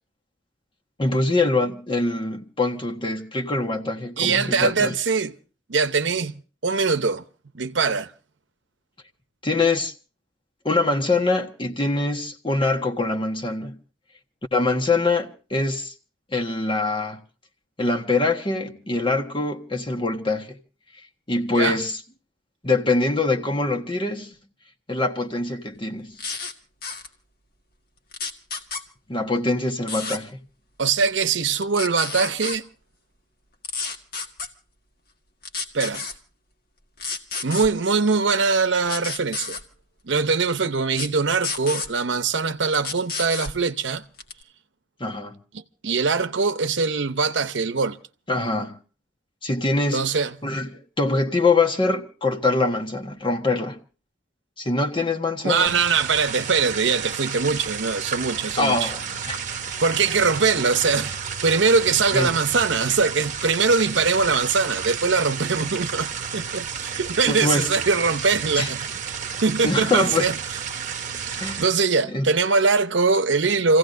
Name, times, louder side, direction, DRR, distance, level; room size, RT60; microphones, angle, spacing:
voice 1, 1.0-4.9 9.4-9.9 10.6-13.8 14.5-15.9 16.3-17.2 17.8-20.6 21.3-22.0 22.6-24.3 24.9-26.2 29.1-30.4 45.0-45.4 48.3-48.8 49.4-50.0 50.4-53.8 54.6-55.7 58.6-59.4 62.1-62.4 67.2-67.7 68.6-68.7 69.6-70.3 71.4-71.6 72.1-72.3, left 3 dB, 25° left, 1.4 m, -24 dB
voice 2, 4.2-5.4 5.7-7.2 7.5-8.1 21.5-21.8 30.8-32.7 35.7-36.0 37.4-39.6 40.0-44.0 45.5-48.0 49.9-50.3 55.4-58.9 59.8-61.1 61.4-68.8 69.4-70.4 71.1-73.8, right 4 dB, 75° right, 0.9 m, -22 dB
sound 1, 26.2-26.5 26.8-27.1 28.1-28.8 29.9-30.2 31.5-32.6 33.6-34.5 35.4-36.1 37.0-37.7 38.9-39.6 40.9-41.1 41.4-41.9 42.7-43.5 44.2-44.4, left 4 dB, 55° left, 1.9 m, -30 dB
sound 2, 55.7-71.6, right 7 dB, 45° right, 1.1 m, -32 dB
29.0 x 16.0 x 2.6 m
head